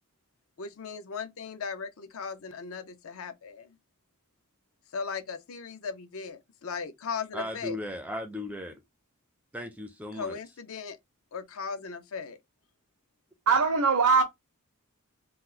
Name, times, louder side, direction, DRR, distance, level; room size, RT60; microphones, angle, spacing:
voice 1, 0.6-3.8 4.9-7.8 10.1-11.0 11.3-12.4, left 5 dB, 65° left, 0.6 m, -37 dB
voice 2, 7.3-8.8 9.5-10.4, left 1 dB, 5° right, 0.4 m, -36 dB
voice 3, 13.5-14.2, right 5 dB, 75° right, 0.6 m, -21 dB
2.9 x 2.0 x 3.7 m
head